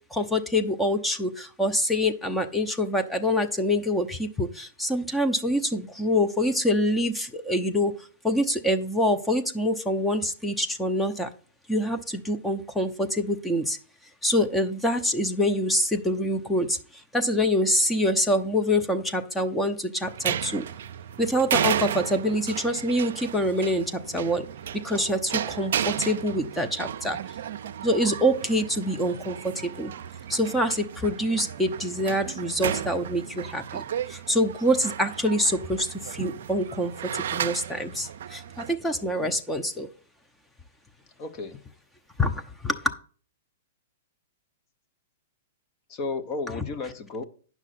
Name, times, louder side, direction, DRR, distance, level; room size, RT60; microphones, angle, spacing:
voice 1, 0.1-11.3 11.7-13.8 14.2-20.6 21.2-24.5 24.8-27.2 27.8-29.9 30.3-39.9 42.2-43.0, equal, 5° left, 0.8 m, -25 dB
sound 1, 20.0-38.7, right 9 dB, 65° right, 0.5 m, -33 dB
voice 2, 39.0-39.4 41.2-41.6 45.9-47.2, left 3 dB, 40° left, 1.0 m, -34 dB
9.8 x 6.1 x 4.3 m
hypercardioid pair, 120°, 0 cm